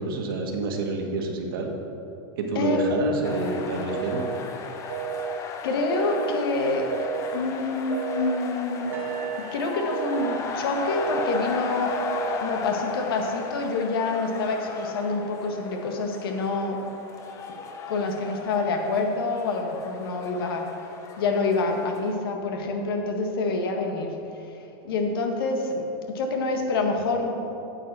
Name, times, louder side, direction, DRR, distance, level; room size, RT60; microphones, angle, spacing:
voice 1, 0.0-1.7 2.4-4.5, right 3 dB, 80° right, 2 dB, 1.8 m, -28 dB
voice 2, 2.6-3.2 5.6-6.9 7.3-9.0 9.4-12.0 12.4-16.8 17.9-20.7 21.2-27.5, left 3 dB, 85° left, 3 dB, 1.7 m, -27 dB
sound 1, 2.9-3.4 3.9-4.4 4.9-5.4 5.9-6.4 6.9-7.4 7.9-8.4 8.9-9.4 9.9-10.4 10.9-11.4 11.9-12.4, right 10 dB, 40° right, 0.3 m, -32 dB
sound 2, 3.2-22.1, left 4 dB, 25° left, 0.8 m, -36 dB
sound 3, 8.9-12.1 12.9-13.0, right 5 dB, 15° right, 1.4 m, -46 dB
8.7 x 8.4 x 6.1 m, 2.9 s
supercardioid pair, 155°, 12 cm